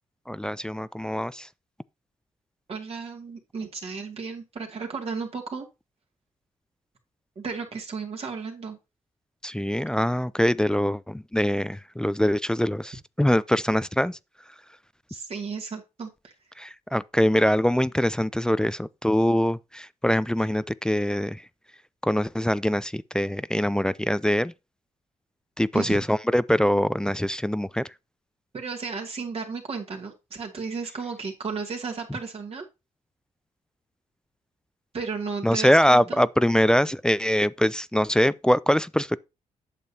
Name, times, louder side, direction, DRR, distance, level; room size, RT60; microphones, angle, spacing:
voice 1, 0.3-1.5 9.4-14.2 16.6-21.4 22.0-24.5 25.6-27.8 35.4-39.2, equal, 5° left, 0.3 m, -23 dB
voice 2, 2.7-5.7 7.4-8.8 15.1-16.3 25.7-26.0 28.5-32.6 34.9-36.2, right 5 dB, 50° right, 2.2 m, -34 dB
8.2 x 6.9 x 2.8 m
cardioid pair, 70°, 13 cm